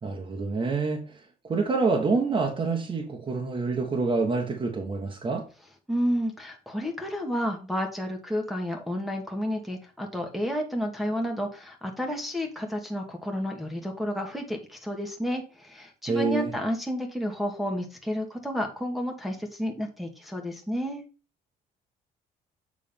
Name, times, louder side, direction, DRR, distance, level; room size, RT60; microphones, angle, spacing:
voice 1, 0.0-5.5 16.1-16.5, right 4 dB, 30° right, 0 dB, 1.3 m, -27 dB
voice 2, 5.9-21.0, equal, ahead, 1 dB, 1.4 m, -31 dB
7.4 x 3.8 x 5.2 m, 0.35 s
cardioid pair, 110°, 17 cm